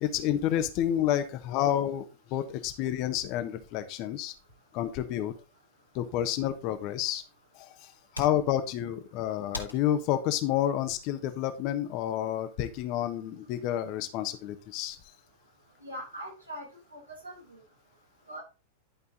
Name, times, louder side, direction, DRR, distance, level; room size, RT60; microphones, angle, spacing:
voice 1, 0.0-2.0 2.3-4.3 4.7-5.3 5.9-7.2 7.5-15.0, left 11 dB, 40° left, 9 dB, 1.3 m, -29 dB
sound 1, 7.8-12.1, left 1 dB, 85° left, 2.3 m, -47 dB
voice 2, 15.8-16.7 16.9-17.6 18.3-18.4, equal, 85° right, -1 dB, 5.4 m, -41 dB
11.5 x 5.5 x 4.0 m, 0.29 s
figure-of-eight pair, 90°, 0 cm